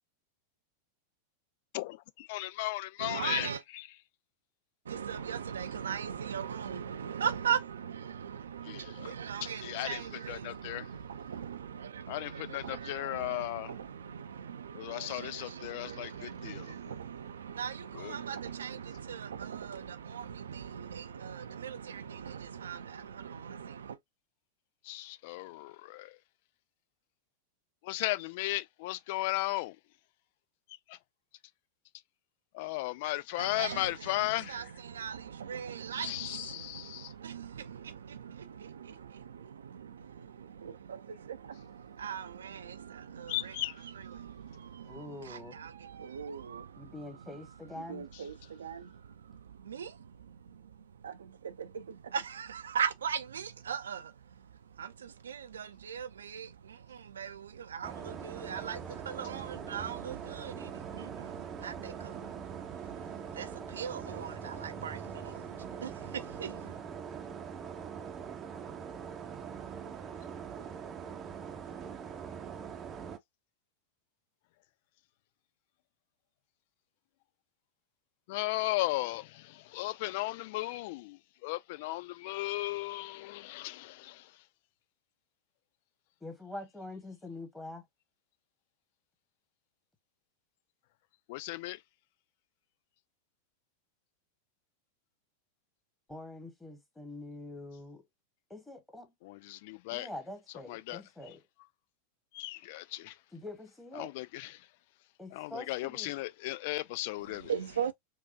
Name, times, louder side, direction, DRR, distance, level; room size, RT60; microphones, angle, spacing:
voice 1, 1.7-3.5 8.7-9.1 9.4-10.0 10.3-10.9 12.1-13.7 14.7-16.7 17.9-18.2 24.8-26.2 27.8-29.8 30.9-31.0 32.5-34.6 35.9-37.1 43.3-43.7 78.3-84.3 91.3-91.8 99.2-100.1 100.7-101.0 102.3-103.2 104.0-104.7 105.3-107.5, left 18 dB, 50° left, 0.3 m, -36 dB
voice 2, 3.0-3.6 4.8-24.0 33.4-66.8 107.2-107.9, right 7 dB, 65° right, 0.5 m, -40 dB
voice 3, 44.8-45.6 46.8-48.0 86.2-87.9 96.1-98.0 98.5-99.1 99.9-101.4 103.3-104.1 105.2-106.1, left 2 dB, 5° left, 1.4 m, -45 dB
sound 1, 57.8-73.2, right 7 dB, 25° right, 0.7 m, -42 dB
4.7 x 2.3 x 2.6 m
figure-of-eight pair, 90°, 0 cm